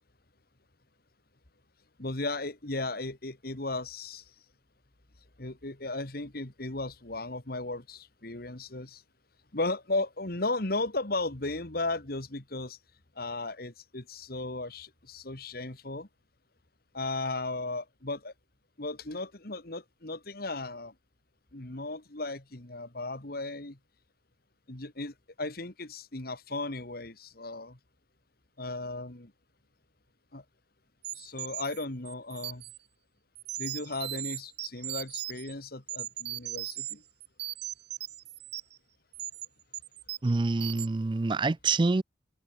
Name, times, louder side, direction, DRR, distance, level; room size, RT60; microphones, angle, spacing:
voice 1, 2.0-4.3 5.4-9.0 9.5-12.8 13.2-16.1 16.9-18.3 18.8-20.9 21.5-23.8 24.7-27.8 28.6-29.3 30.3-30.4 31.1-32.6 33.6-37.0, left 2 dB, 55° left, 2.2 m, -35 dB
sound 1, 31.0-32.8 33.4-35.5 35.9-36.9 37.2-38.8 39.1-39.5 39.7-40.3 40.6-40.9, right 14 dB, 60° right, 1.4 m, -38 dB
voice 2, 40.2-42.0, right 3 dB, 25° right, 0.4 m, -26 dB
head